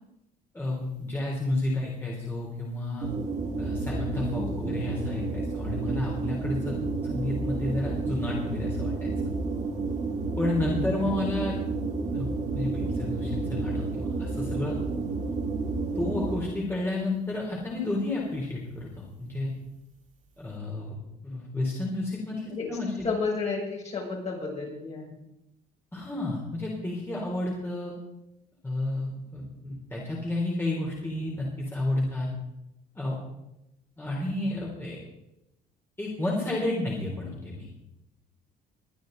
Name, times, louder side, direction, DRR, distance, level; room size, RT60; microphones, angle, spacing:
voice 1, 0.5-3.1 3.6-9.1 10.4-11.5 12.1-14.8 16.0-19.5 20.4-21.0 21.2-23.1 25.9-27.9 28.6-32.3 33.0-33.2 34.0-35.0 36.0-37.7, left 2 dB, 15° left, -3 dB, 3.5 m, -31 dB
sound 1, 3.0-16.7, right 3 dB, 45° right, 3.2 m, -31 dB
voice 2, 4.4-4.8 11.1-11.2 22.5-22.7 23.0-25.2, left 4 dB, 40° left, -3 dB, 6.4 m, -32 dB
21.5 x 10.5 x 4.0 m, 0.89 s
cardioid pair, 110°, 17 cm